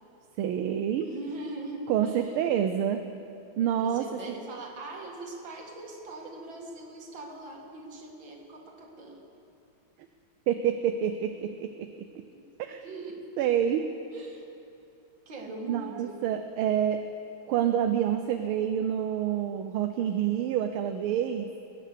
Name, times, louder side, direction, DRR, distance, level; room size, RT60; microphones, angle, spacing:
voice 1, 0.4-1.1 1.9-3.0 3.6-4.0 10.5-11.9 12.6-12.8 13.4-13.8 15.7-17.0 17.5-21.5, right 9 dB, 80° right, 7 dB, 1.5 m, -27 dB
voice 2, 1.0-2.4 3.8-9.3 12.3-12.5 12.8-13.2 14.1-14.5 15.3-16.2, right 2 dB, 60° right, 0 dB, 2.6 m, -41 dB
20.5 x 9.8 x 6.7 m, 2.8 s
omnidirectional pair, 2.4 m